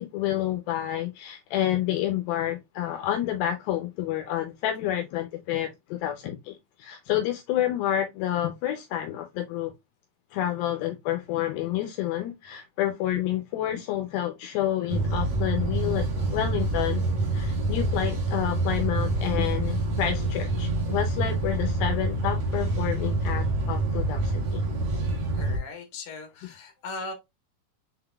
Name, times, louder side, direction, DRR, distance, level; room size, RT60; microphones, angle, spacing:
voice 1, 0.0-9.7 10.3-17.0 17.3-24.6, left 12 dB, 80° left, 2.3 m, -29 dB
sound 1, 14.9-25.6, right 2 dB, 55° right, 2.0 m, -27 dB
voice 2, 25.3-27.1, left 3 dB, 60° left, 2.4 m, -38 dB
5.7 x 3.8 x 2.2 m
omnidirectional pair, 4.3 m